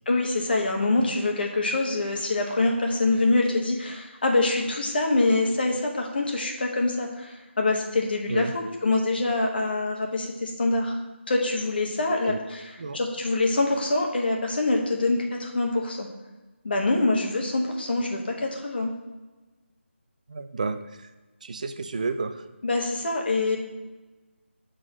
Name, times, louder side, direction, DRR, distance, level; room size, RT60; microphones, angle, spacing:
voice 1, 0.0-11.0 11.3-16.1 16.6-18.9 22.6-23.6, left 2 dB, 50° left, 1 dB, 1.3 m, -25 dB
voice 2, 20.3-21.1 21.4-22.4, right 4 dB, 35° right, 9 dB, 0.4 m, -31 dB
6.3 x 3.8 x 6.1 m, 1.2 s
figure-of-eight pair, 165°, 7 cm